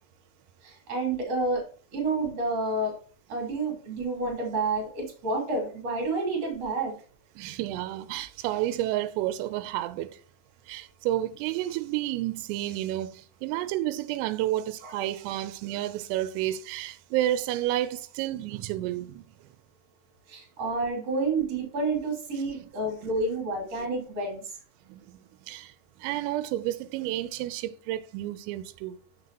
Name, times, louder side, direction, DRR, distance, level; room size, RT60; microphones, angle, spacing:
voice 1, 0.6-1.6 1.9-2.9 3.3-6.9 14.8-15.1 20.3-24.4, right 3 dB, 40° right, 3.0 m, -29 dB
voice 2, 7.4-10.1 10.7-19.2 23.0-23.1 23.8-23.9 24.9-25.1 25.5-25.7 26.0-29.0, right 14 dB, 90° right, 3.2 m, -30 dB
6.8 x 6.6 x 2.9 m
omnidirectional pair, 5.8 m